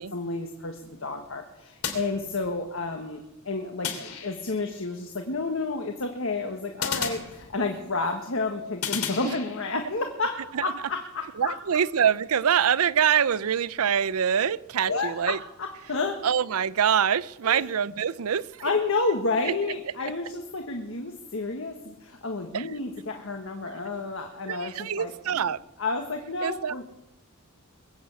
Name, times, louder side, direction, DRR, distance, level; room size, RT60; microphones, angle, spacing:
voice 1, 0.1-11.6 14.9-15.3 15.6-16.2 17.4-17.7 18.6-25.4 25.8-26.8, left 3 dB, 65° left, 4 dB, 1.5 m, -30 dB
sound 1, 1.8-2.8 3.8-4.7 6.8-7.9 8.8-9.9, left 7 dB, 90° left, 2.9 m, -34 dB
voice 2, 11.4-15.4 16.2-18.7 19.4-19.5 22.5-22.7 24.5-25.6 26.4-26.8, right 8 dB, 80° right, 19 dB, 0.5 m, -25 dB
22.0 x 8.0 x 8.1 m, 0.92 s
head